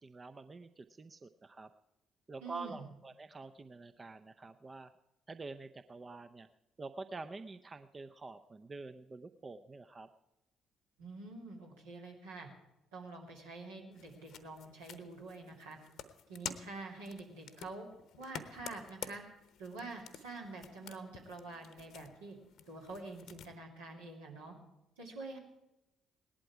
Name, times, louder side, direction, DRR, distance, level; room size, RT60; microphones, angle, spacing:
voice 1, 0.0-1.7 2.3-4.9 5.3-6.5 6.8-10.1, right 3 dB, 30° right, 10 dB, 0.6 m, -47 dB
voice 2, 2.4-2.9 11.0-12.5 12.9-15.8 16.3-17.9 18.2-19.2 19.6-22.4 22.7-24.5 25.0-25.4, right 3 dB, 80° right, -2 dB, 2.6 m, -47 dB
sound 1, 13.9-23.5, left 8 dB, 60° left, 0.9 m, -50 dB
18.0 x 11.5 x 4.7 m, 0.94 s
figure-of-eight pair, 45°, 0 cm